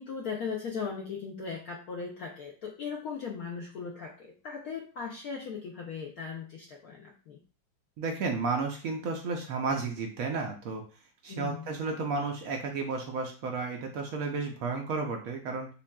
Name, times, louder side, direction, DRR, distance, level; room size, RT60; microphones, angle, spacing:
voice 1, 0.0-7.4 11.3-11.7, left 5 dB, 75° left, 0 dB, 0.8 m, -38 dB
voice 2, 8.0-10.8 11.2-15.7, right 4 dB, 80° right, 2 dB, 0.7 m, -32 dB
5.5 x 2.4 x 2.2 m, 0.38 s
omnidirectional pair, 2.2 m